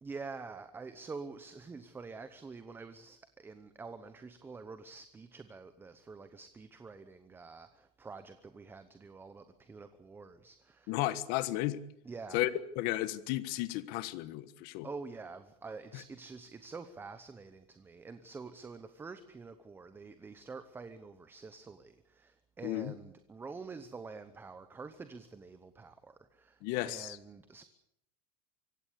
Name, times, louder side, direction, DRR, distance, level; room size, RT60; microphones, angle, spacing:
voice 1, 0.0-10.9 12.0-12.4 14.8-27.6, right 4 dB, 10° right, 11 dB, 0.9 m, -47 dB
voice 2, 10.9-11.8 12.3-12.5 12.7-14.9 15.9-16.0 22.6-22.9 26.6-27.2, left 16 dB, 50° left, 15 dB, 1.5 m, -33 dB
24.5 x 17.0 x 8.4 m, 0.79 s
supercardioid pair, 165°, 20 cm